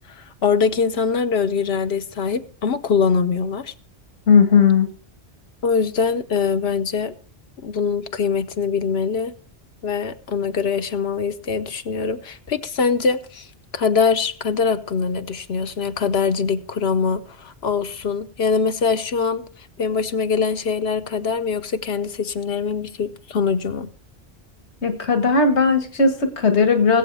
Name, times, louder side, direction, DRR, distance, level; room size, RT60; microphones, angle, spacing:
voice 1, 0.1-3.7 5.6-7.1 7.6-9.3 9.8-13.5 13.7-19.4 19.8-23.9, left 5 dB, 70° left, 1.0 m, -23 dB
voice 2, 4.3-4.9 24.8-27.0, left 5 dB, 85° left, 1.7 m, -17 dB
21.0 x 8.2 x 3.3 m
omnidirectional pair, 1.1 m